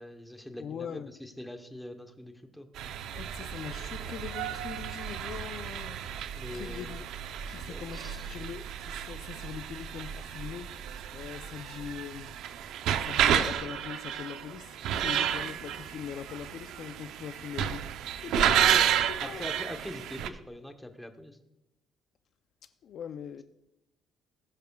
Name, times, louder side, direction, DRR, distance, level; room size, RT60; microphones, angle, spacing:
voice 1, 0.0-2.7 6.3-7.0 7.5-8.3 14.8-15.5 18.5-18.8 19.2-21.4, left 1 dB, 5° left, 0.9 m, -43 dB
voice 2, 0.6-1.2 3.1-7.0 7.4-12.4 13.0-18.8 19.1-19.5 22.6-23.4, left 8 dB, 55° left, 0.4 m, -42 dB
sound 1, 2.8-20.3, right 10 dB, 80° right, 0.6 m, -31 dB
19.0 x 10.5 x 2.3 m
cardioid pair, 145°, 0 cm